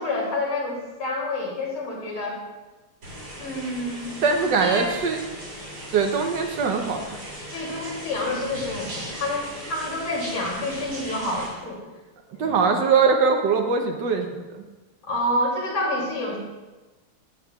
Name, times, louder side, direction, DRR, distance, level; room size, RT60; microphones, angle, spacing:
voice 1, 0.0-2.4 3.4-5.0 7.5-11.8 12.3-12.6 15.1-16.4, left 1 dB, 80° left, -5 dB, 3.6 m, -28 dB
sound 1, 3.0-11.5, right 1 dB, 90° right, 4.6 m, -38 dB
voice 2, 4.2-5.2 5.9-7.1 12.4-14.5, right 5 dB, 65° right, 3 dB, 1.3 m, -21 dB
14.0 x 9.1 x 2.3 m, 1.2 s
omnidirectional pair, 2.4 m